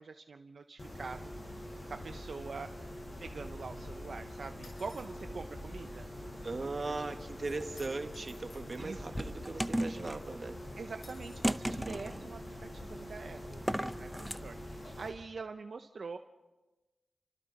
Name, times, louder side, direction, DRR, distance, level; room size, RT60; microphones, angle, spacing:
voice 1, 0.0-1.6 1.9-2.8 3.2-6.1 6.6-6.7 8.7-9.0 10.8-16.2, right 4 dB, 75° right, 7 dB, 0.7 m, -45 dB
Mechanisms, 0.8-15.1, left 1 dB, 45° left, 6.9 m, -45 dB
sound 1, 4.6-5.1 7.8-8.7 11.0-11.5, left 2 dB, 80° left, 6.7 m, -56 dB
voice 2, 6.4-10.6 11.8-12.4, right 3 dB, 50° right, 6 dB, 1.7 m, -39 dB
sound 2, 7.4-8.0 8.7-10.2 11.4-12.2 13.5-14.4, equal, 5° right, 0.6 m, -35 dB
29.5 x 25.0 x 4.1 m, 1.1 s
wide cardioid pair, 80°, 0 cm